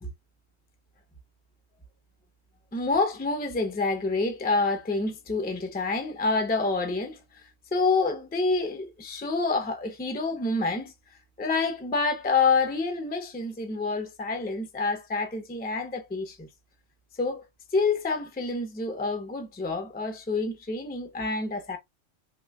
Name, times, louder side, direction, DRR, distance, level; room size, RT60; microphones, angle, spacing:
voice 1, 2.7-7.4 7.7-10.9 11.4-16.5 17.2-17.4 17.7-21.8, left 3 dB, 15° left, 0.3 m, -27 dB
3.1 x 2.3 x 3.4 m
omnidirectional pair, 1.3 m